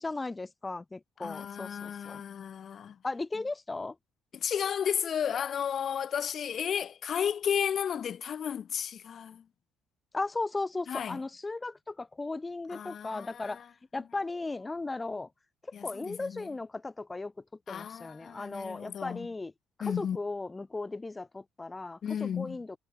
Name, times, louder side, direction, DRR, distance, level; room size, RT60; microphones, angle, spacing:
voice 1, 0.0-2.2 3.0-4.0 10.1-13.6 13.9-15.3 15.7-17.3 17.7-19.5 19.8-22.8, left 3 dB, 25° left, 2.5 m, -36 dB
voice 2, 1.2-3.0 4.3-9.4 10.9-11.2 12.7-13.7 15.7-16.5 17.7-19.3 19.8-20.2 22.0-22.6, left 8 dB, 55° left, 6.6 m, -33 dB
hypercardioid pair, 50°, 0 cm